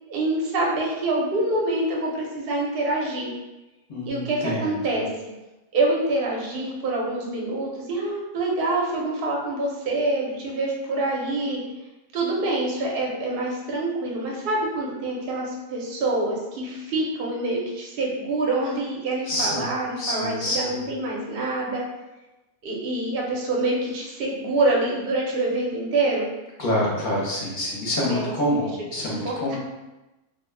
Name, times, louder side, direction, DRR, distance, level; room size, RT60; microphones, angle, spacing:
voice 1, 0.1-3.3 4.0-5.1 5.7-11.6 12.1-21.8 22.6-26.3 28.0-28.6 29.2-29.6, right 2 dB, 55° right, -2 dB, 0.7 m, -26 dB
voice 2, 3.9-5.0 19.2-19.7 20.0-20.7 26.6-29.6, left 1 dB, 45° left, -5 dB, 0.7 m, -27 dB
2.3 x 2.2 x 3.2 m, 1.0 s
omnidirectional pair, 1.5 m